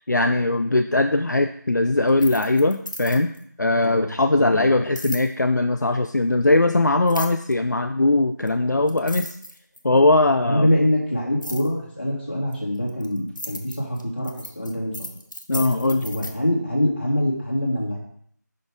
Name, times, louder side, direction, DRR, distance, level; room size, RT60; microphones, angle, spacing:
voice 1, 0.1-3.3 3.6-9.3 9.8-10.7 15.5-16.1, left 2 dB, 70° left, 7 dB, 0.5 m, -20 dB
sound 1, 2.1-3.4 4.9-5.3 7.1-7.5 8.5-8.6 8.9-10.0 11.4-11.7 12.5-16.3, left 1 dB, 85° left, 1.2 m, -35 dB
voice 2, 4.3-4.7 10.4-14.9 16.0-18.0, left 1 dB, 35° left, -3 dB, 2.1 m, -24 dB
6.3 x 5.7 x 4.8 m, 0.64 s
figure-of-eight pair, 170°, 10 cm